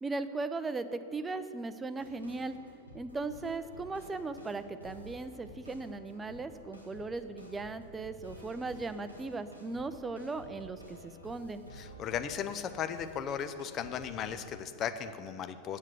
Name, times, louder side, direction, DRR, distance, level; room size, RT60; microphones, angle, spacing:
voice 1, 0.0-2.6 2.9-11.6, right 3 dB, 15° right, 11 dB, 0.5 m, -38 dB
sound 1, 2.0-14.5, equal, 90° left, 1.4 m, -52 dB
voice 2, 11.7-15.8, left 8 dB, 30° left, 10 dB, 0.6 m, -36 dB
8.0 x 7.4 x 7.7 m, 2.6 s
figure-of-eight pair, 90°, 0 cm